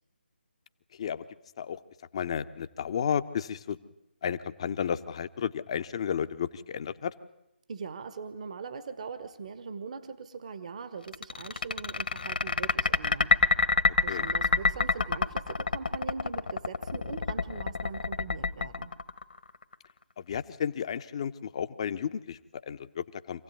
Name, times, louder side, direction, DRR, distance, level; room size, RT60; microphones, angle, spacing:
voice 1, 0.9-1.2 1.6-1.8 2.1-3.8 4.2-7.1 14.1-14.2 20.2-23.4, left 8 dB, 30° left, 11 dB, 1.0 m, -33 dB
voice 2, 7.7-13.4 14.0-18.9, right 5 dB, 40° right, 11 dB, 1.3 m, -41 dB
sound 1, 11.1-19.7, left 4 dB, 55° left, 1.6 m, -27 dB
26.5 x 16.5 x 9.5 m, 0.87 s
figure-of-eight pair, 150°, 6 cm